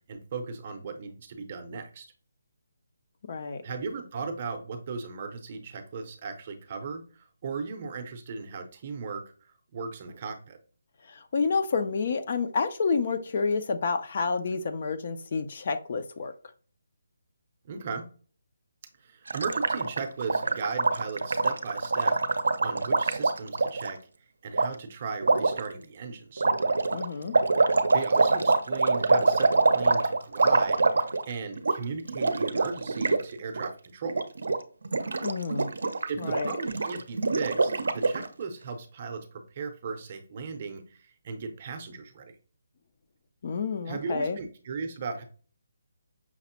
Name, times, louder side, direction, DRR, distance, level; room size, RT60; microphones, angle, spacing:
voice 1, 0.0-2.1 3.6-9.2 9.7-10.6 17.6-18.1 19.0-22.2 22.6-24.0 24.4-26.4 27.9-34.2 36.1-42.3 43.9-45.2, right 5 dB, 30° right, 6 dB, 0.6 m, -37 dB
voice 2, 3.3-3.6 11.0-16.3 26.9-27.4 35.2-35.7 36.2-36.5 43.4-44.4, left 4 dB, 40° left, 9 dB, 0.3 m, -29 dB
Gurgling, 19.3-23.9 24.5-24.7 25.2-25.6 26.4-31.3 31.6-31.8 32.0-33.2 33.5-33.7 34.0-34.6 34.8-38.3, right 3 dB, 80° right, 0.5 m, -25 dB
5.8 x 2.0 x 2.8 m, 0.39 s
hypercardioid pair, 175°, 0 cm